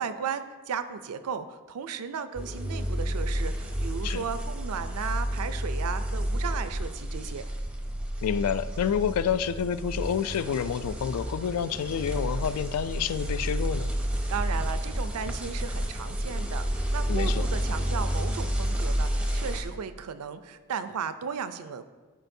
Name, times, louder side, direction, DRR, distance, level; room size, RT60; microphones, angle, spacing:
voice 1, 0.0-7.4 14.3-21.8, right 6 dB, 85° right, 12 dB, 0.4 m, -35 dB
sound 1, 2.4-19.6, equal, 5° right, 0.5 m, -30 dB
voice 2, 8.2-13.9 17.1-17.4, left 8 dB, 80° left, 14 dB, 0.3 m, -28 dB
12.0 x 4.5 x 2.7 m, 1.3 s
head